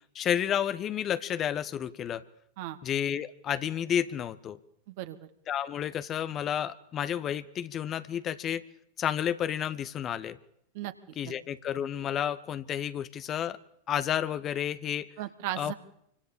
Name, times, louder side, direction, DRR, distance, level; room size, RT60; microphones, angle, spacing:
voice 1, 0.1-2.2 2.8-4.6 5.5-8.6 9.0-10.4 11.2-13.6 13.9-15.1 15.6-15.7, left 9 dB, 30° left, 13 dB, 1.4 m, -31 dB
voice 2, 4.9-5.3 10.7-10.9 11.2-11.3 15.2-15.7, right 14 dB, 50° right, 8 dB, 2.4 m, -36 dB
28.0 x 25.5 x 7.1 m, 0.74 s
figure-of-eight pair, 90°, 0 cm